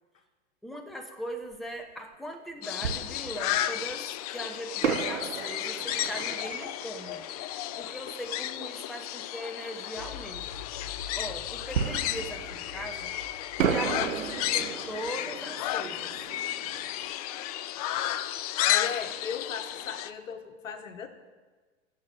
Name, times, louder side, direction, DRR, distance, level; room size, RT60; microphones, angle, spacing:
voice 1, 0.6-7.2 7.8-10.4 11.1-13.1 13.6-16.1, equal, ahead, 5 dB, 1.1 m, -40 dB
Fireworks, 1.5-1.6 2.8-3.9 4.8-8.3 11.7-13.2 13.6-18.1 18.4-18.5 19.0-19.2, right 7 dB, 75° right, 1.0 m, -34 dB
sound 1, 2.6-20.1, left 13 dB, 30° left, 0.4 m, -33 dB
sound 2, 10.0-14.8, left 6 dB, 90° left, 0.9 m, -46 dB
voice 2, 18.4-21.1, left 6 dB, 75° left, 7 dB, 1.5 m, -38 dB
10.5 x 7.7 x 8.7 m, 1.4 s
figure-of-eight pair, 100°, 40 cm